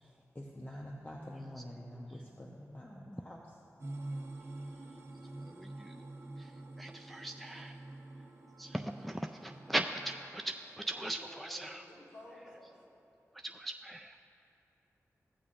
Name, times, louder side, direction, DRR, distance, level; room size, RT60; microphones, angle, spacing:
voice 1, 0.0-3.6, equal, 25° left, -3 dB, 0.9 m, -47 dB
sound 1, 3.8-10.3, right 2 dB, 55° right, 1.4 m, -47 dB
voice 2, 5.6-5.9 6.8-7.7 8.6-11.8 13.5-14.4, right 1 dB, ahead, 4 dB, 0.3 m, -39 dB
voice 3, 10.6-12.8, left 1 dB, 85° left, -6 dB, 2.1 m, -53 dB
16.0 x 6.7 x 2.5 m, 2.9 s
cardioid pair, 40°, 6 cm